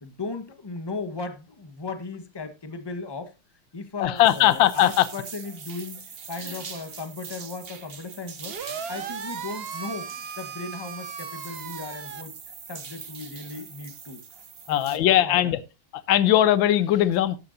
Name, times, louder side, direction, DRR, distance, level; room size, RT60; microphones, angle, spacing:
voice 1, 0.0-3.4 3.7-12.4 12.7-14.2 14.7-15.6, left 3 dB, 15° left, 1.0 m, -37 dB
voice 2, 4.0-5.1 14.7-15.6 16.1-17.4, left 12 dB, 70° left, 1.6 m, -19 dB
sound 1, 4.2-15.0, right 6 dB, 40° right, 1.0 m, -43 dB
sound 2, 8.5-12.2, right 7 dB, 65° right, 0.6 m, -36 dB
14.0 x 10.5 x 2.7 m
omnidirectional pair, 2.3 m